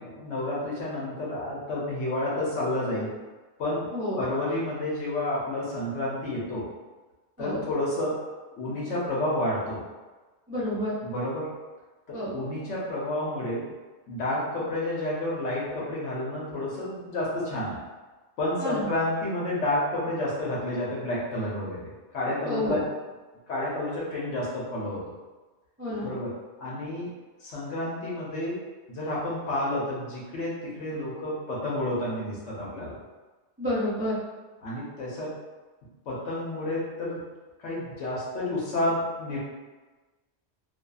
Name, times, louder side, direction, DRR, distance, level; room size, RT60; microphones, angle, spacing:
voice 1, 0.0-3.2 3.6-3.9 4.2-6.6 7.4-8.2 8.6-9.8 11.0-11.5 12.1-13.7 14.1-17.8 18.4-21.8 22.1-22.9 23.5-25.0 26.0-26.3 26.6-27.1 27.4-28.6 28.9-33.0 34.6-35.4 36.1-37.2 37.6-39.4, left 1 dB, 80° left, -6 dB, 1.1 m, -30 dB
voice 2, 10.5-10.9 12.1-12.3 18.6-18.9 22.4-22.8 25.8-26.1 33.6-34.2, left 1 dB, 20° right, -10 dB, 0.4 m, -29 dB
2.6 x 2.3 x 2.3 m, 1.2 s
omnidirectional pair, 1.2 m